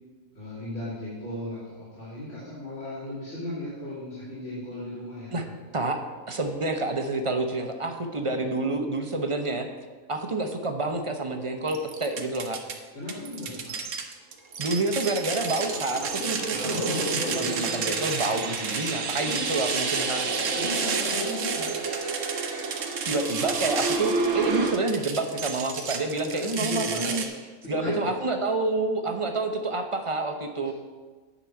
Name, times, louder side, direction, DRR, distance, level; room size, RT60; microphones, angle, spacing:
voice 1, 0.3-5.5 12.9-13.8 16.5-17.9 19.2-19.5 20.6-21.7 26.4-27.1 27.6-28.0 29.2-29.3, left 1 dB, 55° left, -11 dB, 3.1 m, -35 dB
voice 2, 6.3-9.7 10.1-12.6 14.6-16.5 16.9-17.0 17.3-20.3 23.1-27.2 27.7-30.7, right 2 dB, 30° right, 5 dB, 0.7 m, -28 dB
sound 1, 11.7-12.8 13.1-27.3, right 5 dB, 85° right, 1.4 m, -32 dB
sound 2, 14.7-24.8, right 3 dB, 65° right, 1.4 m, -31 dB
9.7 x 5.0 x 7.1 m, 1.4 s
omnidirectional pair, 1.5 m